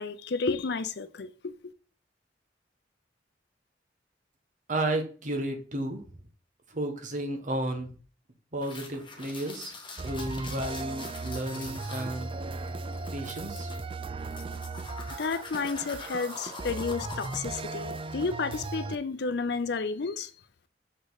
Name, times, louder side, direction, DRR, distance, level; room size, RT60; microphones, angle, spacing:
voice 1, 0.0-1.7 15.2-20.3, left 4 dB, 65° left, 0.5 m, -31 dB
voice 2, 4.7-6.0 6.7-8.0 8.5-9.7 10.0-12.3 13.1-13.7, right 1 dB, 45° right, 1.4 m, -33 dB
sound 1, 8.6-17.4, left 4 dB, 30° left, 1.4 m, -45 dB
sound 2, 10.0-19.0, right 3 dB, 30° right, 0.3 m, -37 dB
6.3 x 5.1 x 4.1 m
head